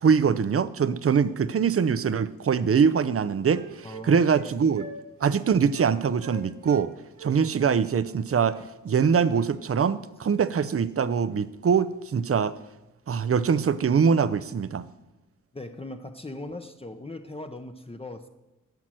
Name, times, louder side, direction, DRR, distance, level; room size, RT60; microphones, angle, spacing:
voice 1, 0.0-4.9 5.2-6.9 7.2-8.6 8.8-12.6 13.1-14.8, right 6 dB, 45° right, 15 dB, 0.7 m, -23 dB
Wind instrument woodwind instrument, 2.2-2.4 2.7-4.5 4.7-5.0 5.2-5.4 5.7-5.9 6.2-6.8 7.2-9.0, right 2 dB, 80° right, 3.4 m, -44 dB
voice 2, 3.8-4.6 8.6-8.7 15.5-18.3, left 2 dB, 15° left, 6 dB, 0.9 m, -39 dB
10.5 x 6.0 x 7.7 m, 1.0 s
supercardioid pair, 40°, 33 cm